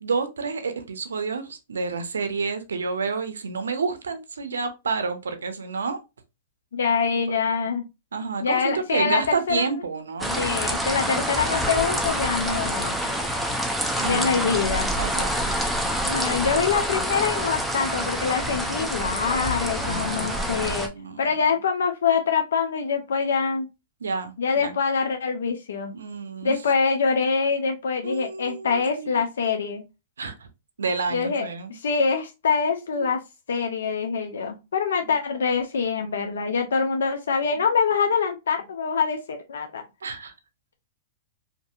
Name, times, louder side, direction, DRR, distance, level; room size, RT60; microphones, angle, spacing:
voice 1, 0.0-6.0 8.1-10.4 10.9-11.2 14.0-14.5 15.0-15.9 19.8-21.2 24.0-24.7 25.9-26.5 28.0-29.1 30.2-30.3 30.8-31.7 32.9-33.1 40.0-40.3, right 4 dB, 85° right, 0.5 m, -30 dB
voice 2, 6.7-7.8 8.4-9.8 10.4-13.0 14.1-14.9 16.1-20.9 21.2-23.7 24.4-25.9 26.4-29.8 31.1-33.2 33.5-39.8, left 5 dB, 80° left, 0.4 m, -25 dB
sound 1, 10.2-20.9, equal, ahead, 0.5 m, -27 dB
2.6 x 2.6 x 2.4 m
hypercardioid pair, 115°, 0 cm